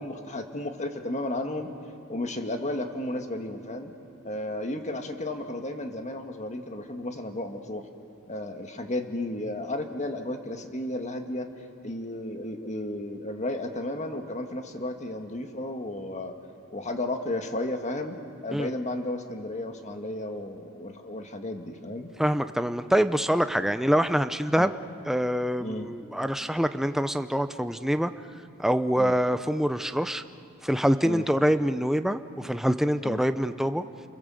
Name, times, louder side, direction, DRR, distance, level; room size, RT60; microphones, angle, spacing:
voice 1, 0.0-1.7 2.1-3.9 4.2-7.9 8.3-11.5 11.8-16.3 16.7-18.2 18.4-22.1 24.6-24.7 25.6-25.9 29.0-29.1 31.0-31.2 33.0-33.2, left 1 dB, 30° left, 5 dB, 1.7 m, -33 dB
voice 2, 22.2-24.7 25.1-28.1 28.6-30.2 30.6-33.8, equal, ahead, 10 dB, 0.6 m, -25 dB
29.0 x 21.5 x 7.7 m, 2.7 s
head